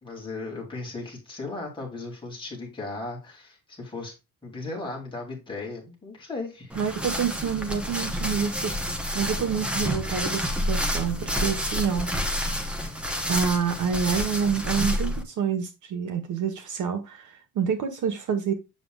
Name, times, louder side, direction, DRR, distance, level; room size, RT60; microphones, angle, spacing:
voice 1, 0.0-4.1 4.4-6.8, left 3 dB, 10° left, 2.9 m, -36 dB
sound 1, 6.7-15.2, equal, 5° right, 0.8 m, -29 dB
voice 2, 6.7-12.1 13.3-18.5, right 7 dB, 50° right, 1.3 m, -28 dB
7.9 x 6.7 x 2.3 m
cardioid pair, 175°, 39 cm